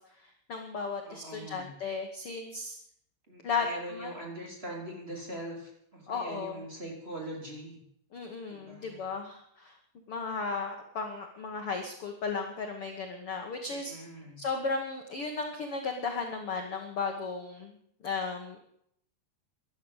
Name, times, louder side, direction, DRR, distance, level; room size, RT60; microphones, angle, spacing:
voice 1, 0.2-2.7 3.4-3.7 3.9-4.1 6.1-6.6 8.1-9.8 10.1-13.9 14.4-17.7 18.0-18.6, left 4 dB, 65° left, 3 dB, 1.4 m, -35 dB
voice 2, 1.0-1.7 3.3-7.8 8.5-9.1 13.7-14.4, right 1 dB, 15° right, -1 dB, 3.2 m, -42 dB
14.5 x 11.5 x 8.2 m, 0.71 s
omnidirectional pair, 4.9 m